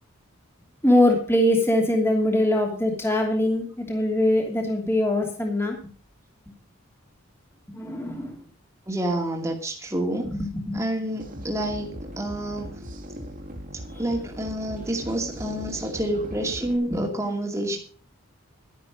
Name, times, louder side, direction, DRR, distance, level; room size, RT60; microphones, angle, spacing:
voice 1, 0.8-5.8 7.7-8.3 10.2-10.8 16.9-17.1, left 1 dB, 10° left, 1 dB, 2.8 m, -22 dB
voice 2, 8.9-10.3 10.7-12.8 14.0-17.8, right 1 dB, 15° right, 1 dB, 2.4 m, -28 dB
sound 1, 11.2-16.8, equal, 40° right, 2.4 m, -39 dB
12.0 x 11.5 x 5.2 m, 0.41 s
head